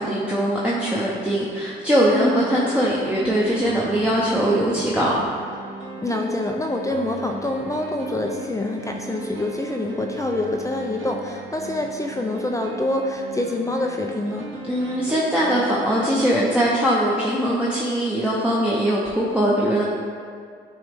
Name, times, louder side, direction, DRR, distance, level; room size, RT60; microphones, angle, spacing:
voice 1, 0.0-5.2 14.7-19.8, equal, 5° right, -7 dB, 0.8 m, -21 dB
voice 2, 2.1-2.5 6.0-14.5, left 1 dB, 15° left, 2 dB, 0.4 m, -26 dB
sound 1, 2.1-16.3, right 4 dB, 80° right, 0.7 m, -37 dB
8.7 x 3.1 x 3.5 m, 2.1 s
cardioid pair, 90°, 20 cm